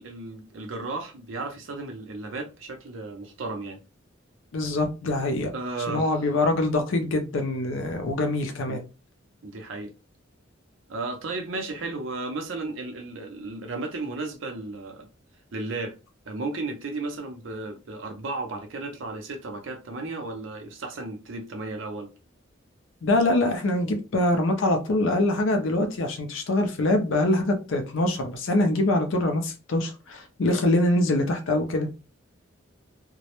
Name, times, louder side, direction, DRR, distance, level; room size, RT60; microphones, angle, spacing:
voice 1, 0.0-3.8 5.5-6.3 8.6-8.8 9.4-9.9 10.9-15.1 15.5-16.0 16.3-22.1, right 3 dB, 80° right, 0.6 m, -34 dB
voice 2, 4.5-5.5 5.9-8.8 23.0-31.9, left 2 dB, 75° left, 0.5 m, -24 dB
2.1 x 2.0 x 2.9 m
head